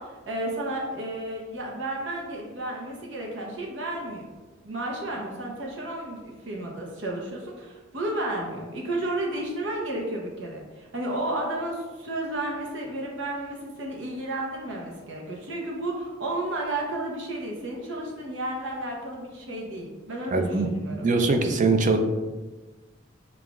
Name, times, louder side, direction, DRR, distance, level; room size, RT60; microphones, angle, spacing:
voice 1, 0.0-4.3 4.6-21.1, right 1 dB, 75° right, -1 dB, 0.8 m, -32 dB
voice 2, 20.3-20.7 21.0-22.0, right 3 dB, 40° right, 5 dB, 0.4 m, -22 dB
6.8 x 2.3 x 2.4 m, 1.3 s
head